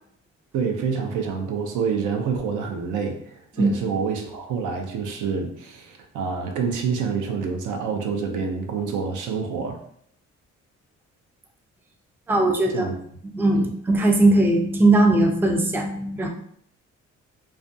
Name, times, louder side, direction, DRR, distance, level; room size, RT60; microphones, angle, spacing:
voice 1, 0.5-9.8 12.7-12.9 13.5-13.7, right 6 dB, 85° right, 3 dB, 0.5 m, -27 dB
voice 2, 12.3-12.9 13.3-16.3, right 2 dB, 5° right, 2 dB, 0.3 m, -19 dB
2.4 x 2.2 x 2.5 m, 0.66 s
cardioid pair, 90°, 30 cm